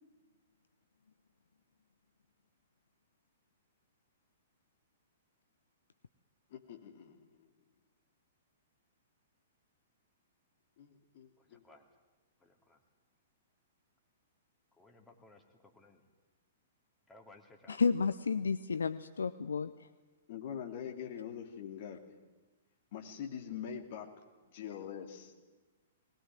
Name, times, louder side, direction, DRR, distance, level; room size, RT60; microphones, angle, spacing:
voice 1, 6.5-7.2 10.8-11.6 20.3-22.0 22.9-24.1 24.5-25.5, left 8 dB, 45° left, 4 dB, 2.9 m, -44 dB
voice 2, 11.4-11.9 12.4-12.8 14.8-16.0 17.1-17.8, left 2 dB, 10° left, 2 dB, 2.9 m, -60 dB
voice 3, 17.7-19.7, left 5 dB, 70° left, 14 dB, 0.6 m, -31 dB
20.5 x 20.0 x 9.2 m, 1.2 s
figure-of-eight pair, 110°, 0 cm